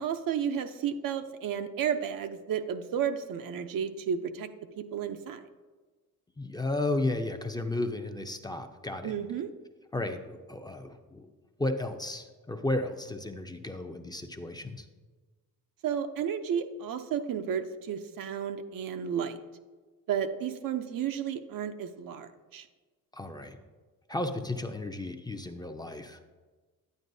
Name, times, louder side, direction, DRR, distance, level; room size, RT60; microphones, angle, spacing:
voice 1, 0.0-4.5 4.8-5.5 9.0-9.5 15.8-19.4 20.1-22.7, right 8 dB, 65° right, 7 dB, 0.6 m, -32 dB
voice 2, 6.4-9.1 9.9-11.3 11.6-14.8 23.1-23.6 24.1-26.2, left 2 dB, 10° left, 6 dB, 0.5 m, -33 dB
9.3 x 9.1 x 2.7 m, 1.3 s
cardioid pair, 95°, 36 cm